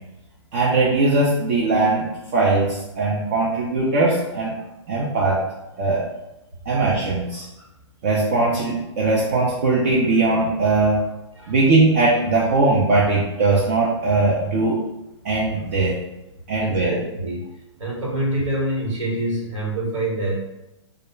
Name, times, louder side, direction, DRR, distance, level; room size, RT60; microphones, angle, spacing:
voice 1, 0.5-4.5 4.9-5.4 5.8-6.0 6.7-7.5 8.0-11.1 11.5-14.8 15.2-16.0 16.5-16.9, right 3 dB, 30° right, -5 dB, 0.4 m, -20 dB
voice 2, 16.6-17.5 17.8-20.4, right 1 dB, 85° right, -4 dB, 1.2 m, -26 dB
2.3 x 2.0 x 3.1 m, 0.94 s
hypercardioid pair, 155°, 15 cm